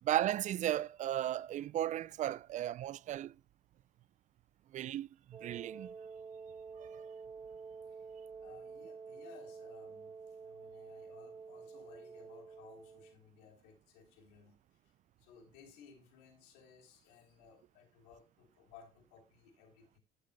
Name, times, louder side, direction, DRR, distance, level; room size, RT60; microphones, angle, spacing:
voice 1, 0.0-3.3 4.7-5.9 6.8-7.0, right 12 dB, 50° right, 0.4 m, -35 dB
Wind instrument woodwind instrument, 5.3-13.2, right 5 dB, 30° right, 1.7 m, -49 dB
voice 2, 8.4-14.9 15.2-20.0, left 6 dB, 85° left, 3.3 m, -60 dB
13.0 x 7.4 x 2.2 m
supercardioid pair, 85°, 16 cm